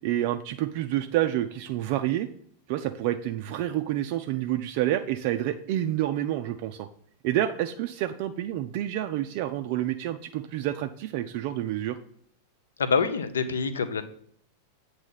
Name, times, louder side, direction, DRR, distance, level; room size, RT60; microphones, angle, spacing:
voice 1, 0.0-2.3 2.7-6.9 7.2-12.0, right 13 dB, 45° right, 7 dB, 0.3 m, -28 dB
voice 2, 12.8-14.0, left 5 dB, 70° left, 11 dB, 0.5 m, -26 dB
8.2 x 2.7 x 5.4 m, 0.64 s
figure-of-eight pair, 90°, 0 cm